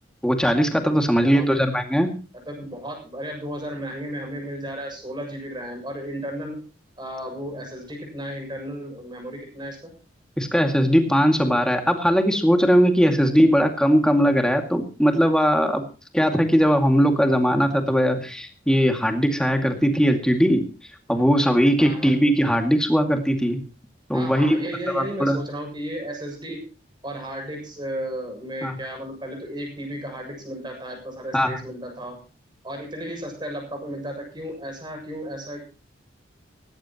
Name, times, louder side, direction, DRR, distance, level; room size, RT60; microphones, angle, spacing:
voice 1, 0.2-2.1 10.4-15.8 16.1-20.7 21.1-23.6 24.1-24.6 24.9-25.4 28.6-28.8 31.3-31.6, equal, 5° left, 4 dB, 2.3 m, -19 dB
voice 2, 1.1-1.6 2.5-6.6 7.0-9.9 21.8-22.1 24.1-26.7 27.0-32.2 32.6-35.7, equal, 25° right, 2 dB, 7.3 m, -34 dB
18.0 x 16.0 x 3.0 m, 0.35 s
head